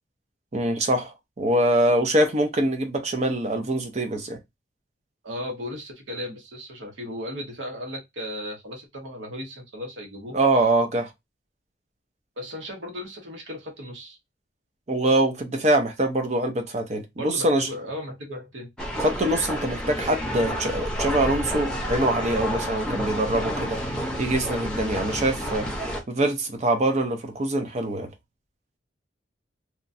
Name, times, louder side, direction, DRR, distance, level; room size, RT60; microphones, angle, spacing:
voice 1, 0.5-4.4 10.3-11.1 14.9-17.7 19.0-23.8 24.2-25.7 26.1-28.1, right 1 dB, 35° right, 0.6 m, -24 dB
voice 2, 5.2-10.4 12.4-14.2 17.2-18.7, left 1 dB, 85° right, 1.0 m, -36 dB
sound 1, 18.8-26.0, equal, 5° left, 0.7 m, -30 dB
2.9 x 2.3 x 2.5 m
head